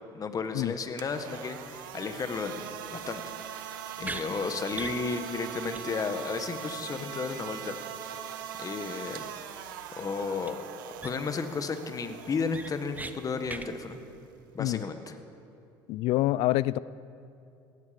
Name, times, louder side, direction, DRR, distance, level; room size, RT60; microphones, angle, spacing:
voice 1, 0.1-3.2 3.5-7.8 8.6-9.2 10.0-10.6 11.0-14.0 14.5-15.1, left 4 dB, 35° left, 8 dB, 1.5 m, -33 dB
sound 1, 0.8-14.9, right 9 dB, 90° right, 1.0 m, -42 dB
sound 2, 4.0-4.3 4.7-5.0 5.3-5.4 5.7-5.9 6.1-6.2 10.4-10.5 11.0-11.4 11.8-11.9 12.2-13.1 13.5-13.7, right 3 dB, 15° right, 0.9 m, -39 dB
voice 2, 15.9-16.8, left 16 dB, 65° left, 20 dB, 0.4 m, -26 dB
17.5 x 15.0 x 5.3 m, 2.6 s
supercardioid pair, 80°, 11 cm